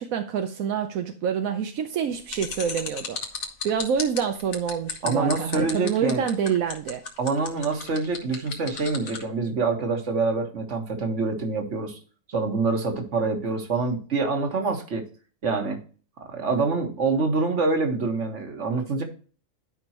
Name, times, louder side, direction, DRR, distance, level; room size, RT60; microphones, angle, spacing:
voice 1, 0.0-3.2 3.6-7.0, right 7 dB, 85° right, 1.1 m, -27 dB
sound 1, 2.3-9.2, left 6 dB, 80° left, 1.7 m, -34 dB
voice 2, 5.0-6.3 7.2-12.0 12.3-15.0 15.4-15.8 16.3-19.0, right 4 dB, 60° right, 1.8 m, -26 dB
11.5 x 5.3 x 3.0 m
omnidirectional pair, 1.4 m